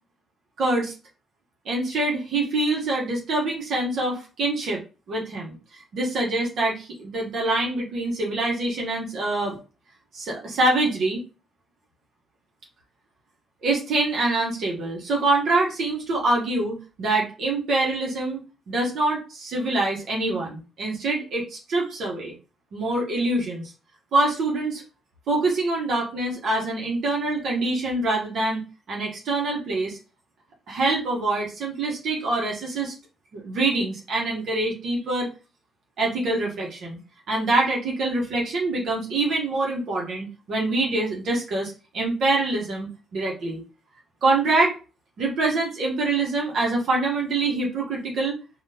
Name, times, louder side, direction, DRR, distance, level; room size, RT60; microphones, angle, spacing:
voice 1, 0.6-0.9 1.6-4.8 5.1-9.6 10.1-11.2 13.6-18.4 18.7-22.3 22.7-23.7 24.1-24.8 25.3-30.0 30.7-32.9 33.3-35.3 36.0-37.0 37.3-43.6 44.2-44.7 45.2-48.4, right 2 dB, 65° right, -2 dB, 1.0 m, -25 dB
3.6 x 2.3 x 2.8 m, 0.33 s
cardioid pair, 90°, 0 cm